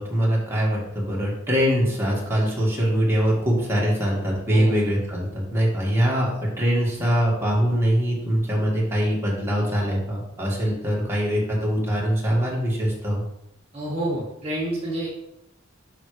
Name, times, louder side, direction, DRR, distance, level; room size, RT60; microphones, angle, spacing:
voice 1, 0.0-13.2, equal, 15° right, -4 dB, 1.9 m, -23 dB
voice 2, 13.7-15.1, right 1 dB, 30° right, -5 dB, 1.5 m, -28 dB
7.2 x 5.9 x 3.3 m, 0.85 s
head